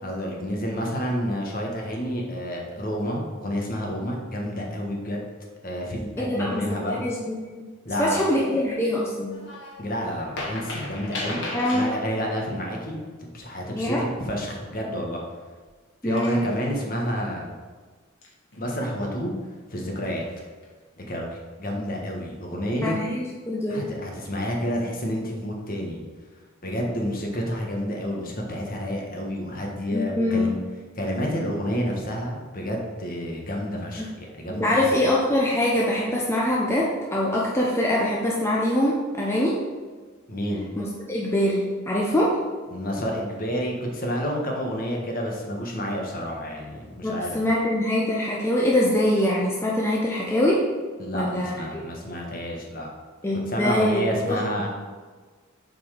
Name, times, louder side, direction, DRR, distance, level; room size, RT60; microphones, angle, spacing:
voice 1, 0.0-5.2 5.6-7.0 7.8-8.2 9.8-11.4 11.7-15.2 16.0-17.5 18.6-19.3 19.7-20.2 21.0-21.3 21.6-23.0 23.7-26.0 26.6-30.6 31.0-34.9 40.3-40.6 42.7-47.5 51.0-52.9 53.5-54.7, equal, 40° left, -1 dB, 1.4 m, -29 dB
voice 2, 6.2-7.7 8.0-9.3 11.5-11.9 13.7-14.0 16.0-16.4 22.8-23.8 29.9-30.5 34.5-39.6 40.8-42.4 47.0-50.6 51.1-51.8 53.2-54.4, left 1 dB, 10° left, -4 dB, 0.7 m, -24 dB
sound 1, 9.3-9.8 10.1-12.2 14.8-15.0 15.6-15.7 16.2-16.8 18.2-18.9 20.1-20.7 21.2-21.4, left 1 dB, 60° left, 1.9 m, -35 dB
7.4 x 4.5 x 5.0 m, 1.4 s
head